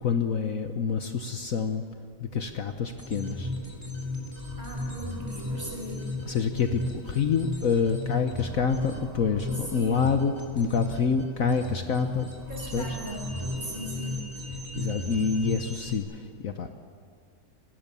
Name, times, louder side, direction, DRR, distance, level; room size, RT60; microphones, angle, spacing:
voice 1, 0.0-1.8 2.2-3.5 6.2-12.3 12.7-13.0 14.7-16.7, left 6 dB, 60° left, 6 dB, 1.3 m, -27 dB
sound 1, 3.0-16.0, left 1 dB, 10° right, 3.4 m, -35 dB
voice 2, 4.6-6.1 9.7-10.1 12.5-14.2, equal, 30° right, -1 dB, 6.1 m, -38 dB
29.0 x 18.0 x 6.9 m, 2.3 s
omnidirectional pair, 1.8 m